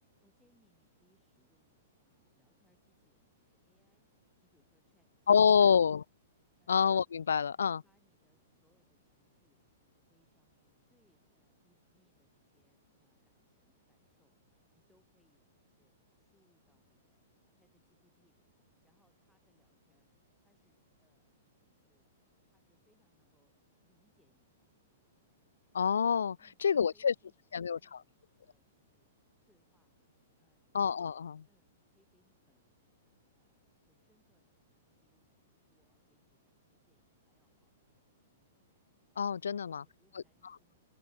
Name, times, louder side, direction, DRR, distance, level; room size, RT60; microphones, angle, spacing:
voice 1, 0.2-5.7 6.6-6.8 7.6-22.1 22.4-24.7 26.4-29.1 29.4-30.0 30.4-30.8 31.4-38.6 39.5-40.9, left 1 dB, ahead, 7.9 m, -76 dB
voice 2, 5.3-6.0 6.7-7.8 25.7-26.4 26.6-27.1 27.5-28.0 30.7-31.4 39.2-39.8, left 7 dB, 85° left, 0.3 m, -27 dB
hypercardioid pair, 120°, 0 cm